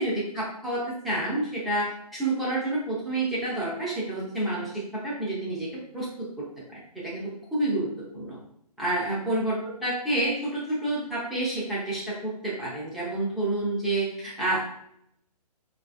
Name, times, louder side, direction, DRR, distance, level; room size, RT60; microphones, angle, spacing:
voice 1, 0.0-8.4 8.8-9.6 9.8-14.6, right 2 dB, ahead, -9 dB, 0.3 m, -29 dB
4.2 x 2.5 x 2.4 m, 0.75 s
hypercardioid pair, 145°, 21 cm